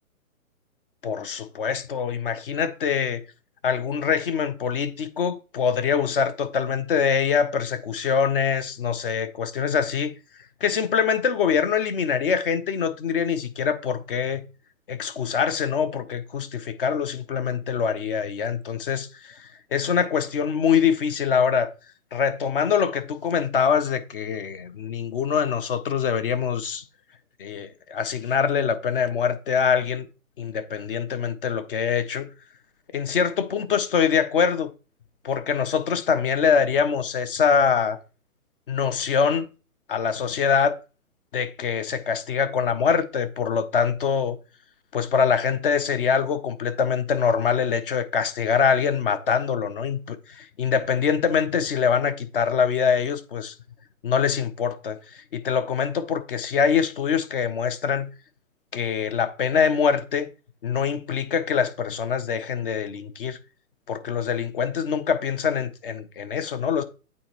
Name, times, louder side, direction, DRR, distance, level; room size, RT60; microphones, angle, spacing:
voice 1, 1.0-3.2 3.6-10.1 10.6-14.4 14.9-21.7 22.1-26.8 27.4-30.1 30.4-32.3 32.9-34.7 35.2-38.0 38.7-39.5 39.9-40.8 41.3-44.4 44.9-53.5 54.0-58.1 58.7-60.3 60.6-63.4 63.9-66.8, left 6 dB, 40° left, 0.7 m, -24 dB
8.6 x 4.1 x 2.9 m
hypercardioid pair, 145°, 44 cm